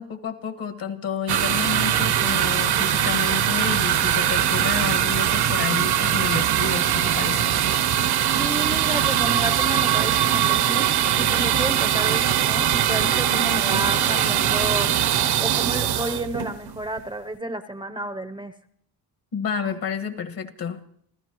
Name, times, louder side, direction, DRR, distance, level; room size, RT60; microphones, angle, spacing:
voice 1, 0.0-7.6 19.3-20.8, left 6 dB, 55° left, 6 dB, 1.7 m, -30 dB
sound 1, 1.3-17.0, right 10 dB, 65° right, 0.9 m, -21 dB
voice 2, 8.4-14.9 15.4-18.5, right 1 dB, 10° right, 8 dB, 0.6 m, -31 dB
28.5 x 15.0 x 3.0 m, 0.66 s
cardioid pair, 130°, 41 cm